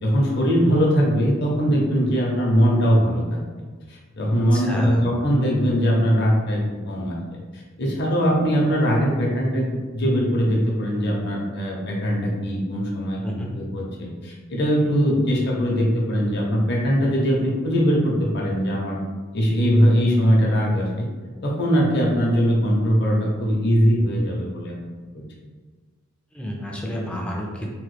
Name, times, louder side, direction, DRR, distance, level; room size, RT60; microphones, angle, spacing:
voice 1, 0.0-3.4 3.9-6.6 6.9-7.1 7.5-9.6 9.9-19.0 19.3-21.1 21.4-24.8 25.1-25.2, equal, 55° left, -2 dB, 0.7 m, -21 dB
voice 2, 4.5-5.0 13.2-13.5 21.3-21.4 26.3-27.7, equal, 5° left, -2 dB, 0.4 m, -31 dB
3.0 x 2.3 x 3.2 m, 1.4 s
head